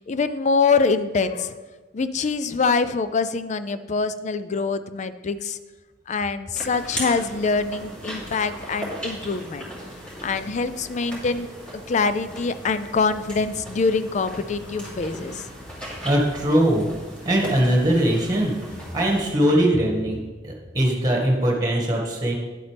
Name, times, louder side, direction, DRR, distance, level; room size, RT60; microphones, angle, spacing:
voice 1, 0.0-1.6 1.9-5.6 6.1-9.7 10.2-11.5 11.9-15.5, left 4 dB, 40° left, 12 dB, 0.4 m, -24 dB
sound 1, 6.5-19.3, equal, 5° left, 3.0 m, -38 dB
voice 2, 16.0-16.9 17.2-22.3, right 1 dB, 20° right, 0 dB, 1.9 m, -21 dB
10.0 x 8.2 x 3.4 m, 1.3 s
head